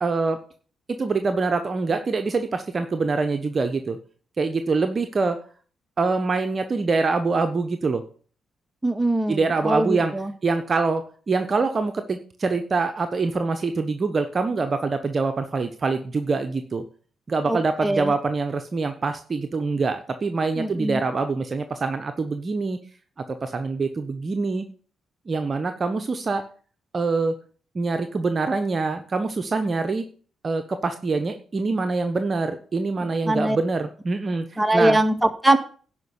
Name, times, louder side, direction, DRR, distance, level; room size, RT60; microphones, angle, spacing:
voice 1, 0.0-0.4 0.9-4.0 4.4-5.4 6.0-8.0 9.3-10.1 10.4-16.8 17.3-22.8 23.4-24.7 25.3-26.4 26.9-27.4 27.7-30.1 30.4-34.4 34.7-35.0, right 4 dB, 45° right, 7 dB, 1.1 m, -25 dB
voice 2, 8.8-9.4 9.6-10.3 17.5-18.1 20.6-21.0 33.2-33.6 34.6-35.6, right 1 dB, 15° right, 7 dB, 1.9 m, -21 dB
11.5 x 5.3 x 8.2 m, 0.42 s
hypercardioid pair, 45°, 0 cm